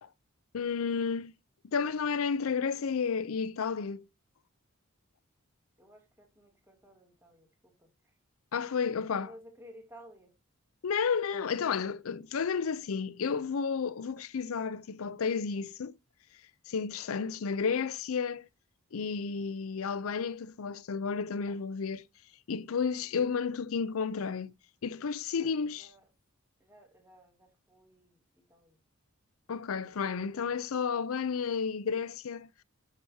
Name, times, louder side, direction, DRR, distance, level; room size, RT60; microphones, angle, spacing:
voice 1, 0.5-1.3 1.7-4.0 8.5-9.3 10.8-16.0 16.7-18.5 18.9-22.0 22.5-24.5 24.8-25.9 29.5-32.6, left 6 dB, 70° left, 0.5 m, -32 dB
voice 2, 5.8-8.2 8.7-10.3 25.4-25.5 25.7-26.1 26.6-28.8, equal, 10° right, 2.7 m, -56 dB
11.0 x 6.1 x 2.7 m
head